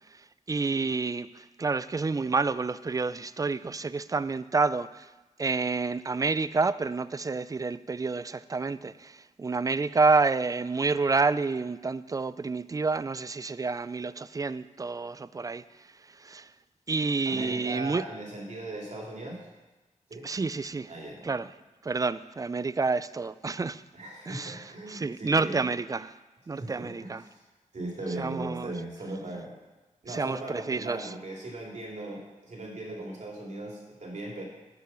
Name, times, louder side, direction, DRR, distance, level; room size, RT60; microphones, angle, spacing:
voice 1, 0.5-5.1 5.4-15.6 16.2-16.5 16.9-18.1 20.2-20.9 21.2-21.5 21.8-23.8 24.3-26.2 26.5-27.2 28.2-28.7 30.1-31.1, right 4 dB, 25° right, 16 dB, 0.4 m, -29 dB
voice 2, 17.2-19.4 20.1-20.3 20.9-21.4 23.9-25.7 26.5-27.4 27.7-29.5 30.0-34.4, right 1 dB, 60° right, -1 dB, 2.8 m, -38 dB
10.0 x 5.7 x 6.9 m, 1.1 s
cardioid pair, 65°, 14 cm